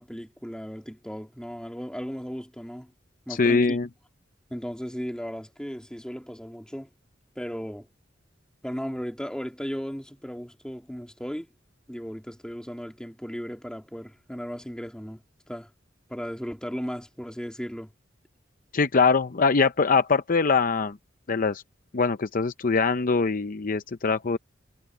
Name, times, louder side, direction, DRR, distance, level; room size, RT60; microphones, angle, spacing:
voice 1, 0.0-2.9 3.3-3.8 4.5-6.9 7.4-7.9 8.6-11.5 11.9-15.2 15.5-15.7 16.1-17.9, equal, 5° left, 2.8 m, -36 dB
voice 2, 3.4-3.9 18.7-21.0 21.3-21.6 21.9-24.4, left 4 dB, 45° left, 0.6 m, -23 dB
head